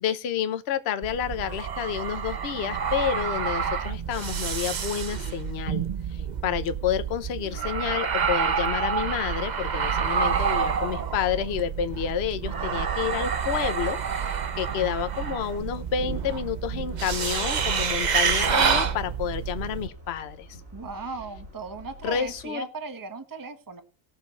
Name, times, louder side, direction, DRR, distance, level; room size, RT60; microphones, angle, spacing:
voice 1, 0.0-20.5 22.0-22.7, left 9 dB, 55° left, 10 dB, 1.0 m, -29 dB
sound 1, 1.0-19.9, right 6 dB, 40° right, 0.7 m, -28 dB
voice 2, 12.7-13.3 20.7-23.8, right 4 dB, 15° right, 9 dB, 1.0 m, -37 dB
sound 2, 15.4-22.4, equal, 75° right, 7.6 m, -47 dB
19.0 x 6.7 x 4.0 m, 0.35 s
omnidirectional pair, 1.4 m